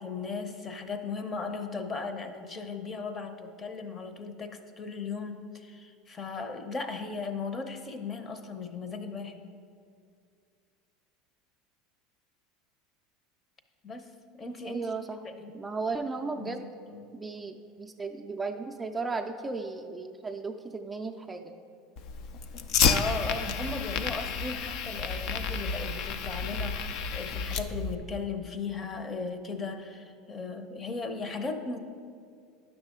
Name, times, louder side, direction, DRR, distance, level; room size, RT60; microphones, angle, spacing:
voice 1, 0.0-9.4 13.8-14.1 14.4-14.9 15.2-15.5 16.2-17.0 22.8-31.8, left 4 dB, 30° left, 8 dB, 0.7 m, -37 dB
voice 2, 14.7-15.2 15.5-16.7 17.1-21.5, right 4 dB, 15° right, 3 dB, 0.4 m, -35 dB
Fire, 22.0-28.0, left 6 dB, 60° left, 0.5 m, -30 dB
9.6 x 6.1 x 3.7 m, 2.3 s
supercardioid pair, 105°, 0 cm